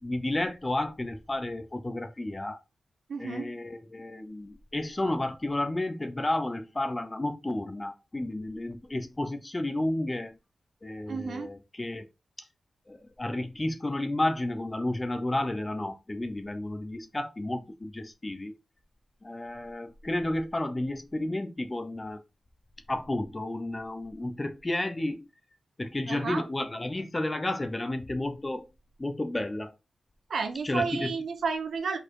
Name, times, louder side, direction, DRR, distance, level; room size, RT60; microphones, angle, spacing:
voice 1, 0.0-2.6 3.2-10.4 10.8-12.1 12.4-12.5 12.9-18.5 19.2-22.2 22.9-25.3 25.8-28.7 29.0-29.7 30.6-31.1, left 1 dB, 15° left, 0.8 m, -32 dB
voice 2, 3.1-3.5 11.1-11.5 26.1-26.4 30.3-32.0, right 5 dB, 60° right, 1.1 m, -31 dB
5.2 x 4.2 x 4.7 m
wide cardioid pair, 175°, 0 cm